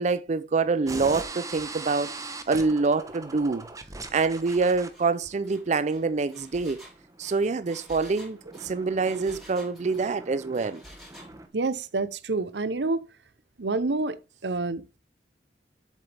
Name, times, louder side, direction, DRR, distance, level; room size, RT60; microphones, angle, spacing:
voice 1, 0.0-2.1 2.5-3.6 4.1-6.8 7.2-10.8, right 4 dB, 40° right, 0.4 m, -26 dB
sound 1, 0.9-11.5, right 3 dB, 20° right, 1.0 m, -42 dB
Engine, 4.4-4.6 4.9-5.1 5.4-10.2 10.5-11.3, equal, ahead, 3.9 m, -50 dB
voice 2, 11.5-13.0 13.6-15.0, right 3 dB, 80° right, 0.8 m, -28 dB
7.9 x 7.3 x 3.4 m
head